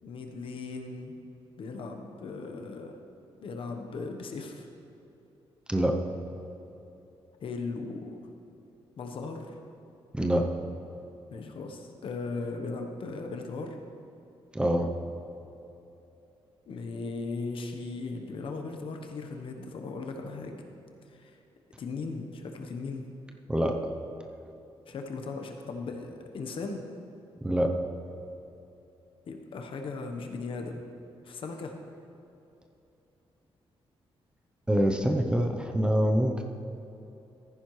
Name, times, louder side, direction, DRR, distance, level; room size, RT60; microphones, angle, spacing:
voice 1, 0.0-1.2 1.6-2.9 3.4-4.7 7.4-8.2 9.0-9.6 11.3-13.8 16.7-20.6 21.1-21.4 21.8-23.1 24.9-26.9 29.3-30.8 31.2-31.7, left 3 dB, 60° left, 4 dB, 1.0 m, -37 dB
voice 2, 5.7-6.0 10.1-10.5 14.5-14.9 23.5-23.9 27.4-27.7 34.7-36.4, equal, 10° right, 3 dB, 0.7 m, -25 dB
14.5 x 10.0 x 3.2 m, 2.9 s
wide cardioid pair, 140°, 10 cm